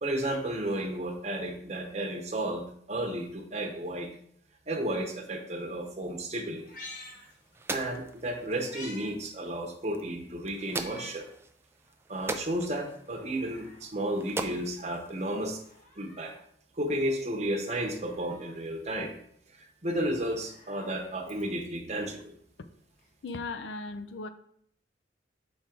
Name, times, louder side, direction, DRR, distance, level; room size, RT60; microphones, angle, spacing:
voice 1, 0.0-4.1 4.7-6.6 7.7-11.3 12.1-15.6 16.0-16.3 16.7-19.1 19.5-22.3, right 1 dB, 35° right, 2 dB, 1.0 m, -33 dB
Meow, 6.6-7.9 8.3-9.1 9.5-9.6 10.6-11.3 11.8-11.9 12.9-13.9 15.5-16.5 17.8-18.6 20.1-21.8 23.0-23.1, left 2 dB, 45° left, 1.2 m, -49 dB
sound 1, 6.8-15.8, right 2 dB, 15° right, 0.3 m, -42 dB
voice 2, 23.2-24.3, left 3 dB, 70° left, 9 dB, 0.5 m, -37 dB
6.2 x 3.7 x 4.5 m, 0.68 s
head